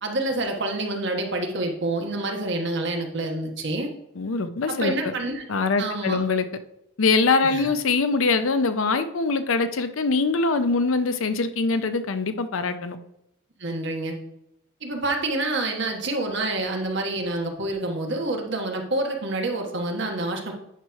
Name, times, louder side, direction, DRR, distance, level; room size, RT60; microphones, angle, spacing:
voice 1, 0.0-3.9 4.7-5.4 5.8-6.2 7.5-7.7 13.6-14.2 14.8-20.5, right 2 dB, 55° right, 2 dB, 1.3 m, -27 dB
voice 2, 4.2-4.9 5.5-6.4 7.0-13.0, left 4 dB, 70° left, 10 dB, 0.6 m, -23 dB
9.1 x 3.1 x 5.7 m, 0.82 s
head